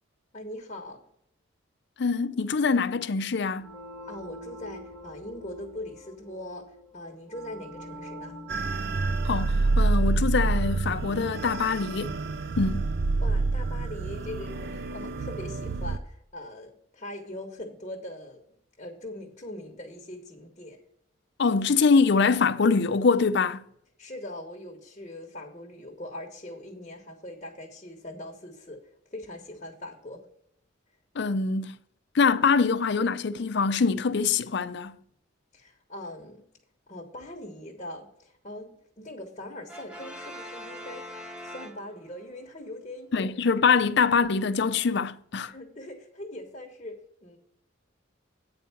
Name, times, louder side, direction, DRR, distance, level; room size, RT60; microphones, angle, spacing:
voice 1, 0.3-1.0 4.1-6.6 6.9-8.3 13.2-18.4 18.8-20.8 24.0-28.8 29.1-30.2 35.5-36.4 36.9-41.0 41.4-43.3 45.5-47.4, left 1 dB, 35° left, 1.3 m, -41 dB
voice 2, 2.0-3.7 9.2-12.2 12.6-12.9 21.4-23.6 31.2-31.7 32.1-34.9 43.1-45.5, left 5 dB, 55° left, 0.5 m, -24 dB
sound 1, 3.6-14.0, equal, 15° left, 1.1 m, -47 dB
sound 2, 8.5-16.0, right 3 dB, 50° right, 0.5 m, -27 dB
Brass instrument, 39.7-42.3, equal, 5° right, 0.7 m, -42 dB
9.0 x 4.6 x 7.1 m
head